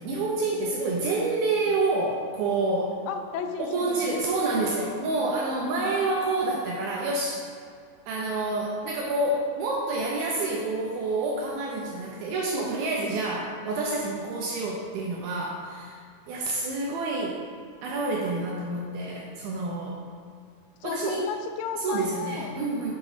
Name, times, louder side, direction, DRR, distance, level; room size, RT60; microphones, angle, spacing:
voice 1, 0.0-2.9 3.6-7.4 8.1-16.0 16.3-17.4 17.8-20.0 20.8-21.3 21.8-22.9, right 2 dB, 80° right, -2 dB, 2.3 m, -28 dB
voice 2, 3.1-4.3 5.6-5.9 20.8-22.7, left 6 dB, 85° left, 6 dB, 2.9 m, -34 dB
6.9 x 6.8 x 4.1 m, 2.2 s
omnidirectional pair, 5.0 m